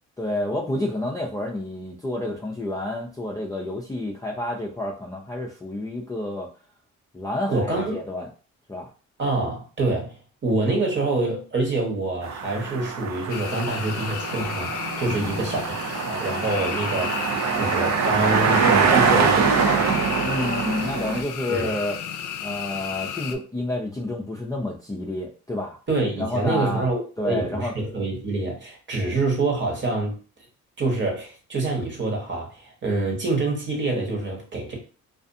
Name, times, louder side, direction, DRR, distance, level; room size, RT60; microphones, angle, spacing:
voice 1, 0.2-6.5 7.1-8.3 8.7-8.9 15.2-15.4 20.2-22.0 22.4-25.8 26.2-26.9 27.2-27.7, left 1 dB, 10° left, -2 dB, 0.4 m, -29 dB
voice 2, 7.5-8.0 9.2-10.2 10.4-19.9 21.5-21.7 25.9-30.2 30.8-34.8, right 2 dB, 40° right, 0 dB, 1.1 m, -26 dB
sound 1, 12.2-21.2, right 6 dB, 60° right, 0.5 m, -24 dB
sound 2, 13.3-23.4, left 8 dB, 85° left, 0.5 m, -33 dB
2.4 x 2.4 x 2.6 m, 0.36 s
cardioid pair, 90°, 30 cm